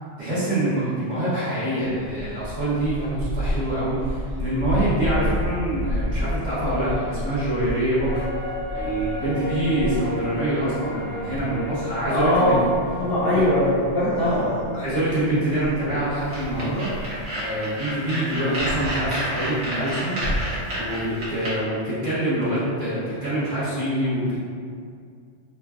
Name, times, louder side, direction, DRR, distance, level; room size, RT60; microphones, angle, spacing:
voice 1, 0.2-8.2 8.7-12.7 13.2-13.4 14.7-17.0 17.4-20.2 20.8-24.4, right 1 dB, 40° right, -12 dB, 0.9 m, -25 dB
Gull seagull, 1.8-17.3, equal, 85° left, 0.9 m, -32 dB
sound 1, 8.0-17.5 17.8-17.9, left 1 dB, 25° left, 0.6 m, -34 dB
voice 2, 12.1-12.6 13.0-14.5, left 1 dB, 60° left, -8 dB, 0.7 m, -21 dB
sound 2, 16.3-21.5, equal, 60° right, 1.0 m, -28 dB
3.1 x 2.3 x 2.3 m, 2.2 s
omnidirectional pair, 1.3 m